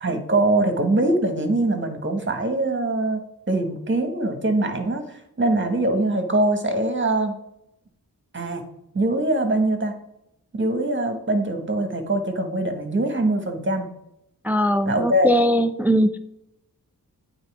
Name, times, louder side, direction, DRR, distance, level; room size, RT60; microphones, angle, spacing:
voice 1, 0.0-7.4 8.3-8.6 8.9-9.9 10.5-13.9 14.8-15.3, right 2 dB, 30° right, 6 dB, 1.5 m, -23 dB
voice 2, 14.4-16.2, equal, 5° right, 11 dB, 0.4 m, -20 dB
8.8 x 4.0 x 3.5 m, 0.81 s
cardioid pair, 40°, 38 cm